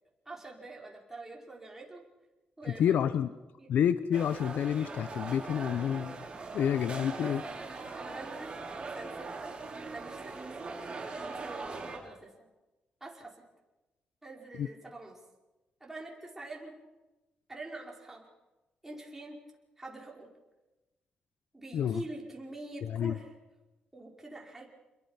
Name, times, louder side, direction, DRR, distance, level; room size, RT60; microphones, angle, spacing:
voice 1, 0.2-2.0 2.6-3.0 3.6-3.7 7.9-8.5 8.8-9.5 9.9-10.9 11.1-12.5 13.0-13.4 14.2-15.2 15.8-16.8 17.5-18.3 18.8-19.4 19.8-20.3 21.5-23.3 23.9-24.7, right 2 dB, 10° right, -1 dB, 4.9 m, -45 dB
voice 2, 2.8-3.3 3.7-6.2 6.5-7.4 14.6-14.7 21.7-22.0 22.9-23.2, left 9 dB, 75° left, 13 dB, 0.7 m, -28 dB
sound 1, 4.1-12.0, right 3 dB, 30° right, 5.6 m, -41 dB
27.5 x 22.0 x 5.9 m, 1.1 s
cardioid pair, 110°, 3 cm